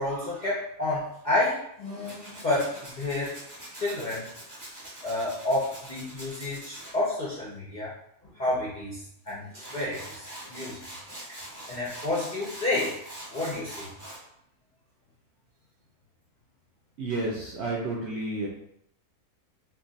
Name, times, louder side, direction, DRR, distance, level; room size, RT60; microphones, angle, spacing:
voice 1, 0.0-3.4 3.7-4.3 5.0-7.9 8.3-10.8 11.7-13.0 13.3-13.9, left 2 dB, 50° left, -7 dB, 0.5 m, -30 dB
Tools, 2.0-6.9 9.3-9.4 9.6-14.2, right 1 dB, 15° right, 0.9 m, -43 dB
voice 2, 17.0-18.5, right 2 dB, 65° right, -3 dB, 0.7 m, -31 dB
2.5 x 2.4 x 3.8 m, 0.73 s
omnidirectional pair, 1.6 m